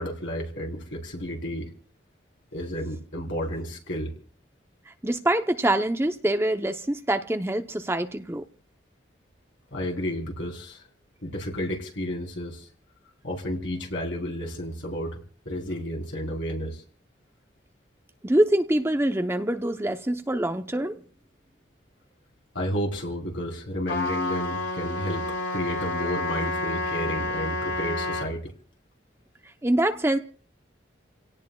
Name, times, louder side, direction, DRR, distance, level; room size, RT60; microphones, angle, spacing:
voice 1, 0.0-1.7 2.5-4.1 9.7-10.8 11.2-12.7 13.2-15.2 15.5-16.8 22.5-28.5, equal, 90° left, 0 dB, 3.9 m, -31 dB
voice 2, 4.9-8.4 18.2-21.0 29.6-30.2, right 1 dB, 15° right, 7 dB, 0.6 m, -25 dB
Trumpet, 23.9-28.3, left 2 dB, 75° left, 3.0 m, -29 dB
29.5 x 17.5 x 2.3 m, 0.44 s
head